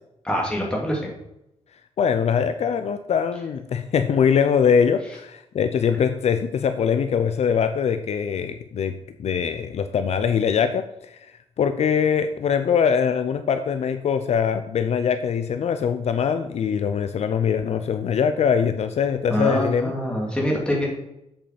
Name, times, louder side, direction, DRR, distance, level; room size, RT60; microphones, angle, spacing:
voice 1, 0.2-1.1 19.3-20.9, equal, 10° left, -2 dB, 2.7 m, -24 dB
voice 2, 2.0-8.9 9.2-19.9, left 7 dB, 65° left, 8 dB, 0.6 m, -22 dB
7.9 x 7.3 x 5.1 m, 0.86 s
wide cardioid pair, 170°, 12 cm